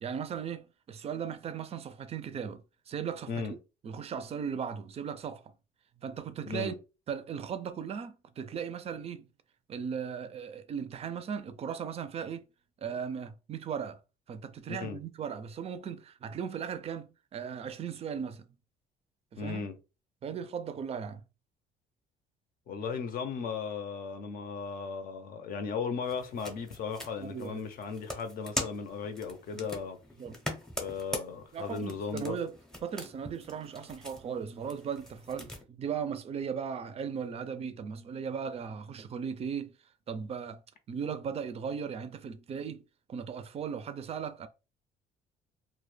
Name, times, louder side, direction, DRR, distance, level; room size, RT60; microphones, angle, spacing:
voice 1, 0.0-3.4 3.8-5.4 6.0-6.7 7.1-9.3 9.7-12.4 12.8-14.0 14.3-18.5 19.3-19.7 20.2-21.2 27.2-27.6 29.5-29.7 30.2-30.3 31.5-32.6 32.8-39.8 40.1-40.6 40.9-42.8 43.1-44.5, right 7 dB, 35° right, 0.4 m, -37 dB
voice 2, 6.4-6.8 14.7-15.0 19.4-19.8 22.7-30.0 30.8-32.4, left 5 dB, 60° left, 0.6 m, -36 dB
sound 1, 26.0-35.6, left 1 dB, 5° left, 0.6 m, -42 dB
2.2 x 2.1 x 3.1 m
cardioid pair, 110°, 17 cm